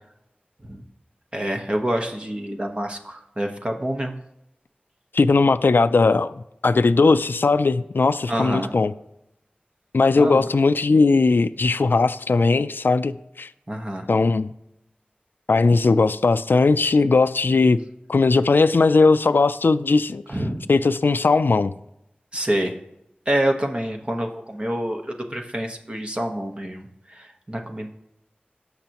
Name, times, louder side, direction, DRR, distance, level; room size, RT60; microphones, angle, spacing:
voice 1, 1.3-4.1 8.3-8.7 10.2-10.5 13.7-14.1 20.3-20.6 22.3-22.7 23.3-27.9, right 1 dB, 30° right, 1.2 m, -27 dB
voice 2, 5.1-8.9 9.9-13.5 14.1-14.5 15.5-17.8 18.1-20.2 20.7-21.7, left 3 dB, 80° left, 0.4 m, -18 dB
19.0 x 6.6 x 3.0 m
wide cardioid pair, 60°, 3 cm